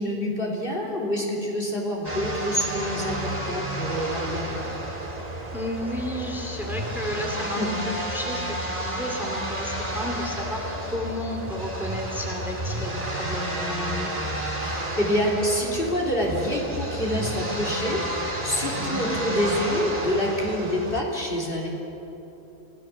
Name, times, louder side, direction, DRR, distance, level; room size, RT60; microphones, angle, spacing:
voice 1, 0.0-4.6 7.6-7.7 14.6-21.7, equal, 40° left, -2 dB, 3.6 m, -27 dB
sound 1, 2.0-21.0, right 1 dB, 30° right, 2.5 m, -31 dB
voice 2, 5.5-14.6 18.7-19.1, left 1 dB, ahead, 1 dB, 2.6 m, -33 dB
27.5 x 18.0 x 7.3 m, 3.0 s
omnidirectional pair, 1.4 m